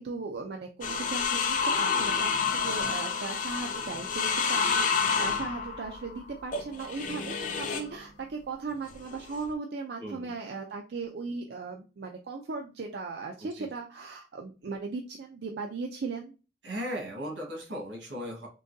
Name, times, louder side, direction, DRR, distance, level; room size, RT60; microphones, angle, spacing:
voice 1, 0.0-16.3, right 4 dB, 65° right, 2 dB, 0.4 m, -37 dB
sound 1, 0.8-7.9 8.9-9.5, left 5 dB, 45° left, 0.4 m, -29 dB
voice 2, 10.0-10.3 13.6-13.7 16.6-18.5, equal, 85° right, 1 dB, 1.4 m, -37 dB
3.8 x 2.6 x 2.6 m, 0.32 s
head